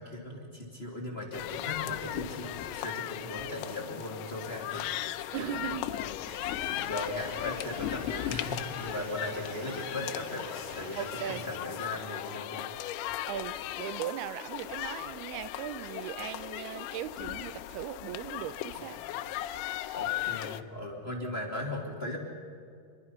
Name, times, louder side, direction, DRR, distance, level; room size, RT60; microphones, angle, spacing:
voice 1, 0.0-4.9 5.4-5.6 5.9-10.5 10.7-12.7 19.9-22.2, left 1 dB, 20° left, 0 dB, 2.3 m, -38 dB
sound 1, 1.3-20.6, left 13 dB, 85° left, 2.7 m, -37 dB
voice 2, 5.3-5.9 8.9-9.0 11.0-11.4 13.3-19.0, right 12 dB, 85° right, 14 dB, 2.6 m, -38 dB
sound 2, 6.3-11.5, right 2 dB, 50° right, 5.2 m, -48 dB
27.5 x 22.0 x 5.7 m, 2.4 s
omnidirectional pair, 4.5 m